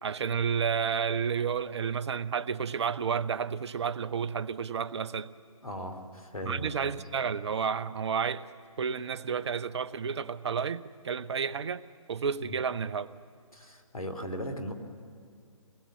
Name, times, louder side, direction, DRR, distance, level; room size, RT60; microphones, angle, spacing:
voice 1, 0.0-5.3 6.5-8.5 8.8-11.8 12.1-13.1, right 6 dB, 55° right, 15 dB, 0.7 m, -31 dB
voice 2, 5.6-7.0 12.4-12.6 13.5-14.7, equal, 90° left, 6 dB, 2.6 m, -38 dB
23.5 x 19.0 x 7.2 m, 2.3 s
figure-of-eight pair, 140°, 18 cm